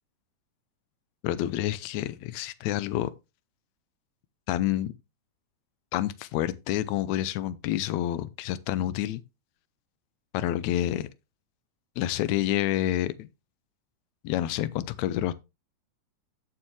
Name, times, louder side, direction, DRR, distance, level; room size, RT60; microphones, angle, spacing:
voice 1, 1.2-3.1 4.5-4.9 5.9-9.2 10.3-11.1 12.0-13.3 14.2-15.3, left 13 dB, 85° left, 1.9 m, -28 dB
8.7 x 7.2 x 3.1 m
omnidirectional pair, 3.4 m